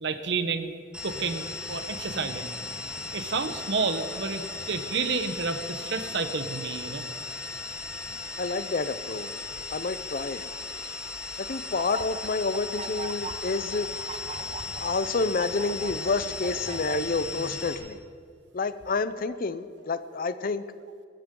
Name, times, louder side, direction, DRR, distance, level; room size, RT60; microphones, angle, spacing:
voice 1, 0.0-0.7 1.0-2.5 3.1-7.1 8.1-8.2 13.2-13.3, right 4 dB, 70° right, 9 dB, 1.0 m, -30 dB
sound 1, 0.9-17.7, left 3 dB, 5° right, 3.1 m, -37 dB
voice 2, 8.4-9.3 9.7-10.4 11.5-13.9 14.8-18.0 18.5-20.6, left 4 dB, 50° left, 13 dB, 0.6 m, -29 dB
sound 2, 11.8-17.0, right 4 dB, 35° right, 0.7 m, -41 dB
21.5 x 14.0 x 3.8 m, 2.1 s
head